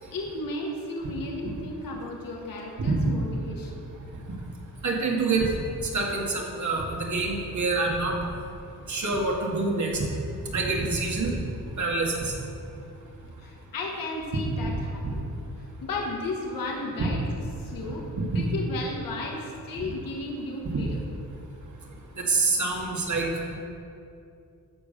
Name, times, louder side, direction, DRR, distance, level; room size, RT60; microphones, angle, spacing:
voice 1, 0.1-3.8 13.4-15.3 15.8-17.2 17.6-21.0, left 2 dB, 70° left, -1 dB, 1.7 m, -34 dB
voice 2, 4.8-8.2 8.9-10.1 10.5-11.3 11.8-12.4 17.9-18.0 18.3-18.4 19.8-19.9 22.2-23.5, right 3 dB, 55° right, -1 dB, 2.2 m, -26 dB
13.0 x 5.0 x 6.8 m, 2.6 s
cardioid pair, 75°, 35 cm